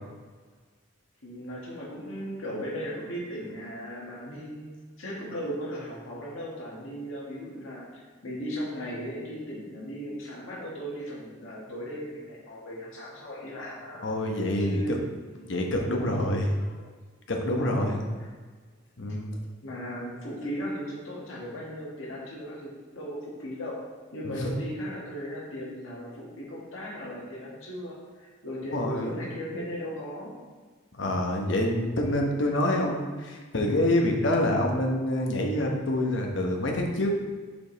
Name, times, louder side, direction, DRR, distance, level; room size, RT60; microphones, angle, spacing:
voice 1, 1.2-4.7 5.0-14.0 14.6-15.0 15.4-15.6 17.6-18.3 19.6-23.8 24.1-30.3, equal, 75° left, -5 dB, 1.8 m, -37 dB
voice 2, 14.0-14.8 15.5-16.5 17.3-18.0 19.0-19.3 24.2-24.5 28.7-29.1 31.0-37.1, left 1 dB, 60° left, 1 dB, 1.0 m, -26 dB
5.2 x 5.1 x 4.0 m, 1.5 s
head